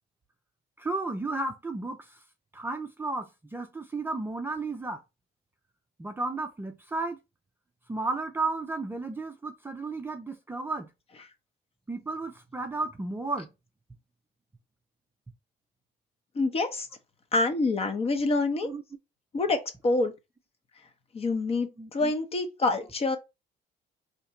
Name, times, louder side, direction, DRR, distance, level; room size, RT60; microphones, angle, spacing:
voice 1, 0.8-2.2 2.5-5.0 6.0-7.2 7.9-10.9 11.9-13.5 18.6-18.8 21.8-22.1, right 3 dB, 15° right, 0.4 m, -33 dB
voice 2, 16.3-16.9 17.3-18.7 19.3-20.1 21.1-23.2, left 2 dB, 35° left, 0.8 m, -26 dB
2.9 x 2.6 x 4.3 m
cardioid pair, 110°, 17 cm